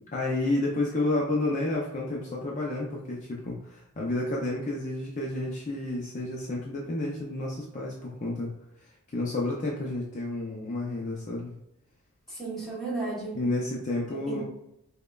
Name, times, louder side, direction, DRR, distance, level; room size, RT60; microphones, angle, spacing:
voice 1, 0.1-8.5 9.1-11.5 13.3-14.4, left 2 dB, 35° left, -3 dB, 0.5 m, -30 dB
voice 2, 12.3-13.4 14.1-14.4, right 3 dB, ahead, -7 dB, 1.0 m, -34 dB
5.1 x 2.2 x 2.3 m, 0.84 s
head